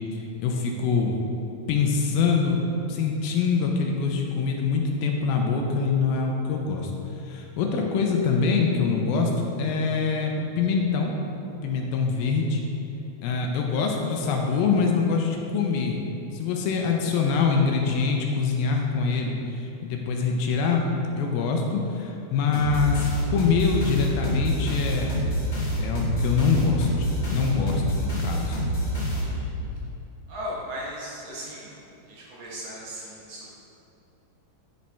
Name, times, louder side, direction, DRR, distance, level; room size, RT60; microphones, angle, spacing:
voice 1, 0.1-1.1 1.7-2.6 2.9-6.9 7.2-11.1 11.6-12.6 13.2-16.0 16.3-20.9 21.2-25.1 25.8-28.6, left 5 dB, 80° left, 1 dB, 2.3 m, -24 dB
sound 1, 22.5-29.7, equal, 45° left, 1.0 m, -27 dB
voice 2, 29.2-29.5 30.3-31.8 32.1-33.5, equal, 70° right, -6 dB, 1.4 m, -37 dB
10.5 x 5.1 x 3.4 m, 2.8 s
omnidirectional pair, 4.4 m